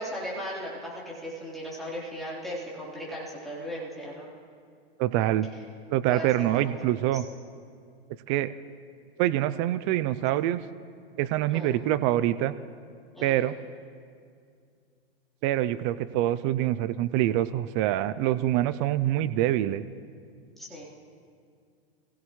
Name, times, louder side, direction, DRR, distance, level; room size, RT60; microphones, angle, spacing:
voice 1, 0.0-4.3 5.5-5.6 6.1-7.2 11.5-11.7 13.1-13.4 20.6-20.8, equal, ahead, -8 dB, 3.6 m, -37 dB
voice 2, 5.0-5.5 5.9-7.2 8.3-8.5 9.2-10.6 11.2-12.6 13.2-13.5 15.4-19.8, right 13 dB, 30° right, 14 dB, 0.3 m, -25 dB
27.5 x 16.5 x 3.1 m, 2.3 s
supercardioid pair, 140°, 32 cm